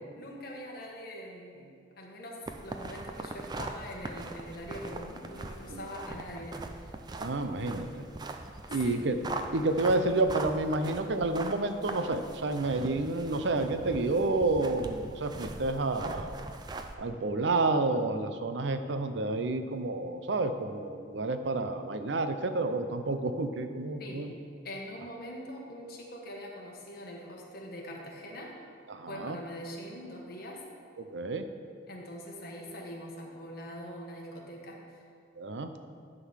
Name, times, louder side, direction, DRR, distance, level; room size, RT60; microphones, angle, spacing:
voice 1, 0.1-6.8 8.7-9.1 24.0-24.4 24.6-28.6 29.1-30.7 31.9-35.0, equal, 50° left, -1 dB, 1.3 m, -43 dB
sound 1, 2.5-16.9, right 2 dB, 20° right, 0.4 m, -41 dB
voice 2, 7.2-8.1 8.7-9.2 9.5-16.3 17.0-24.3 28.9-29.4 31.0-31.5 35.4-35.8, right 2 dB, 65° right, 8 dB, 0.6 m, -30 dB
11.5 x 3.9 x 6.3 m, 2.2 s
head